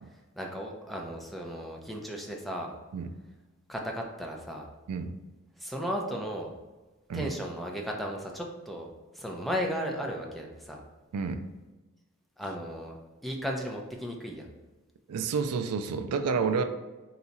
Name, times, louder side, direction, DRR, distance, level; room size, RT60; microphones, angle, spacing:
voice 1, 0.4-2.7 3.7-4.7 5.6-6.5 7.1-8.9 9.1-10.8 12.4-13.0 13.2-14.5, equal, ahead, 0 dB, 0.5 m, -35 dB
voice 2, 15.1-16.6, right 5 dB, 85° right, 8 dB, 0.4 m, -29 dB
3.9 x 2.3 x 4.1 m, 1.2 s
head